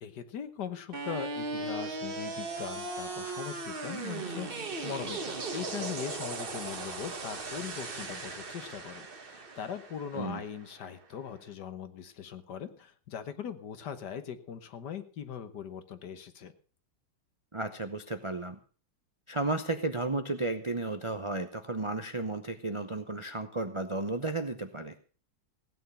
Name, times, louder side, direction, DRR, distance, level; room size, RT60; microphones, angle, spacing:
voice 1, 0.0-16.5, left 8 dB, 65° left, 11 dB, 1.7 m, -40 dB
sound 1, 0.9-11.0, right 3 dB, 35° right, 1.3 m, -38 dB
voice 2, 17.5-18.6 19.3-24.9, right 2 dB, 50° right, 8 dB, 0.3 m, -33 dB
16.5 x 9.2 x 5.6 m, 0.40 s
omnidirectional pair, 2.0 m